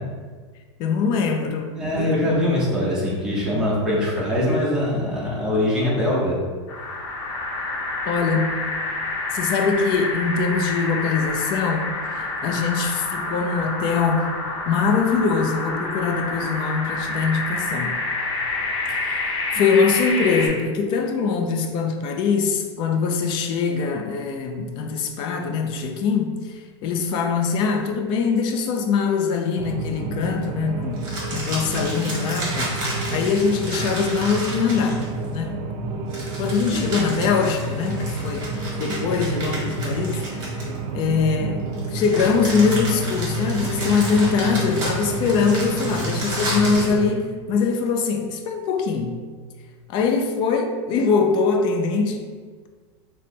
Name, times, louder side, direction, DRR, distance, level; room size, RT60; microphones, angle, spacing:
voice 1, 0.8-2.3 8.1-8.6 9.3-14.3 14.7-18.0 18.9-32.8 33.1-35.0 35.3-35.5 36.4-40.5 40.9-49.2 49.9-52.3, left 5 dB, 30° left, 4 dB, 0.3 m, -23 dB
voice 2, 1.8-6.4 19.5-19.6 36.7-36.9, left 1 dB, 5° right, -7 dB, 0.7 m, -22 dB
sound 1, 6.7-20.5, left 2 dB, 65° left, 0.7 m, -28 dB
sound 2, 29.6-47.0, right 2 dB, 50° right, 0.5 m, -29 dB
sound 3, 31.0-35.3 36.1-41.0 41.7-47.0, right 1 dB, 25° right, 1.1 m, -32 dB
3.2 x 2.0 x 4.1 m, 1.5 s
supercardioid pair, 155°, 16 cm